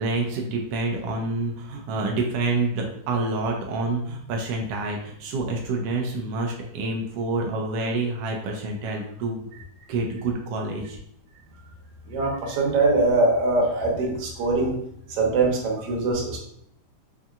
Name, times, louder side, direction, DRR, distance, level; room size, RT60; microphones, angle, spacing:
voice 1, 0.0-9.5 9.9-11.0, right 3 dB, 90° right, 1 dB, 1.3 m, -27 dB
voice 2, 12.1-14.8 15.1-16.4, right 3 dB, 65° right, -1 dB, 1.6 m, -22 dB
5.5 x 2.7 x 2.4 m, 0.70 s
omnidirectional pair, 3.4 m